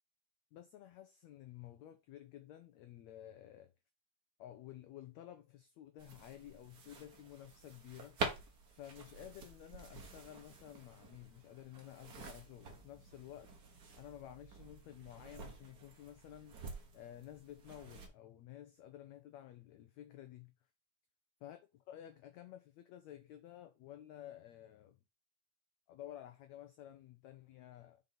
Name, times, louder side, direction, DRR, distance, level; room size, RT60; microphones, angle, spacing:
voice 1, 0.5-3.7 4.4-8.2 8.7-13.5 14.0-16.6 16.9-20.5 21.4-21.6 21.9-25.0 25.9-28.0, left 12 dB, 85° left, 1.5 m, -53 dB
sound 1, 6.0-18.1, right 4 dB, 80° right, 0.8 m, -48 dB
5.3 x 5.3 x 5.8 m
omnidirectional pair, 4.0 m